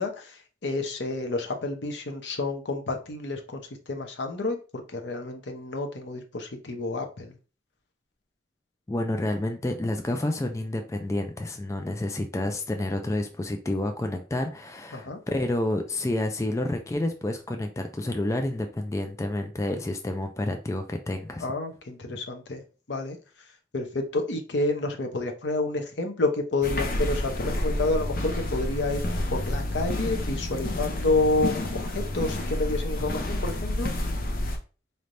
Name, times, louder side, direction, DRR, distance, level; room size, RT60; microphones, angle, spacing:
voice 1, 0.0-3.6 3.9-7.4 14.9-15.2 21.4-22.6 22.9-23.2 23.7-29.0 29.3-33.9, left 2 dB, 85° left, 0.8 m, -29 dB
voice 2, 8.9-21.5, left 1 dB, 15° left, 0.3 m, -29 dB
sound 1, 26.6-34.6, left 1 dB, 50° left, 0.6 m, -29 dB
4.2 x 3.3 x 2.6 m
head